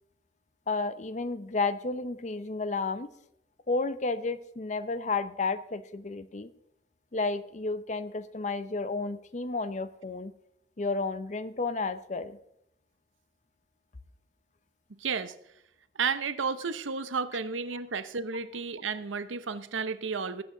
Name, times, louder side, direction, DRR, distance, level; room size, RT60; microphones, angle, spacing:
voice 1, 0.7-3.1 3.7-6.5 7.1-10.3 10.8-12.4, left 3 dB, 40° left, 13 dB, 0.6 m, -32 dB
voice 2, 15.0-15.3 15.9-20.4, right 5 dB, 85° right, 13 dB, 0.8 m, -32 dB
19.0 x 7.7 x 3.8 m, 0.76 s
head